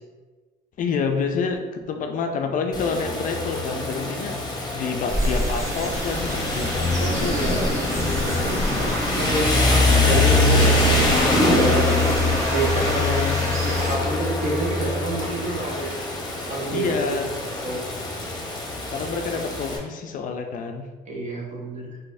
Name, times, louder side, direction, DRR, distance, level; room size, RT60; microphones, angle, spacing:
voice 1, 0.8-7.6 12.7-13.4 16.7-17.3 18.9-20.9, left 5 dB, 50° left, 4 dB, 0.4 m, -28 dB
Rain, 2.7-19.8, left 2 dB, 25° left, 0.9 m, -23 dB
sound 1, 5.1-14.0, equal, 20° right, 0.8 m, -29 dB
voice 2, 7.1-7.8 8.4-12.1 12.5-15.9 16.5-17.2 17.6-17.8 21.1-22.0, right 1 dB, 45° right, -2 dB, 1.1 m, -28 dB
4.0 x 2.6 x 2.6 m, 1.3 s
cardioid pair, 110°, 17 cm